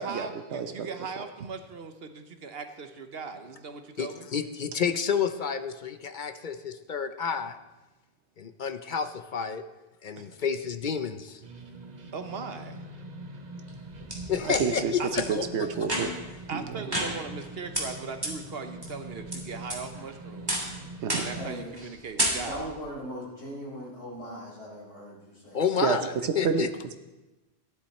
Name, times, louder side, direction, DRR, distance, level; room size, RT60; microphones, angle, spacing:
voice 1, 0.0-4.3 10.2-10.3 12.1-12.8 15.0-15.1 16.5-20.6 21.1-22.7, right 5 dB, 65° right, 7 dB, 1.2 m, -39 dB
voice 2, 0.5-0.9 14.4-16.1 16.5-16.6 21.0-21.2 25.8-26.0 26.2-26.7, right 6 dB, 85° right, 7 dB, 1.1 m, -28 dB
voice 3, 4.0-7.5 8.4-9.6 10.0-11.4 14.3-15.5 25.5-26.7, left 6 dB, 50° left, 10 dB, 0.7 m, -30 dB
sound 1, 11.4-21.6, right 2 dB, 40° right, 1.1 m, -43 dB
sound 2, 13.7-14.6 15.2-15.3 15.8-16.3 16.9-17.5 17.7-17.8 18.2-18.3 18.8-19.4 19.7-20.1 20.5-20.7 21.1-21.4 21.7-21.9 22.2-22.7, right 1 dB, 20° right, 2.5 m, -30 dB
voice 4, 21.4-21.7 22.4-25.6, equal, 85° left, -6 dB, 4.9 m, -39 dB
15.0 x 10.5 x 4.3 m, 1.1 s
omnidirectional pair, 1.1 m